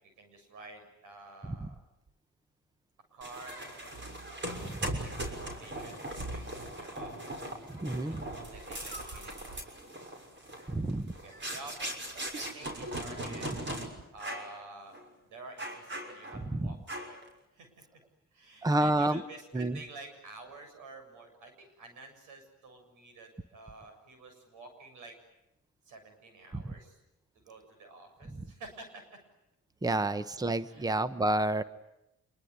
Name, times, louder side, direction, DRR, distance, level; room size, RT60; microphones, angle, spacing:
voice 1, 0.0-1.8 3.1-4.0 4.4-7.4 8.1-10.0 11.1-13.6 14.1-16.8 17.0-17.2 17.5-18.0 18.3-25.1 25.8-27.0 27.3-29.0 30.0-30.1 30.7-30.9, right 3 dB, 90° right, 7 dB, 7.4 m, -50 dB
sound 1, 3.2-13.9 14.2-14.5 14.9-15.1 15.6-16.5 16.9-17.3, right 1 dB, 40° right, 6.3 m, -39 dB
voice 2, 7.8-8.2 10.7-11.1 16.5-16.7 18.6-19.2 19.5-19.8 26.5-26.6 29.8-31.6, right 1 dB, 10° right, 13 dB, 1.1 m, -29 dB
26.0 x 23.0 x 9.6 m, 0.88 s
cardioid pair, 90°, 30 cm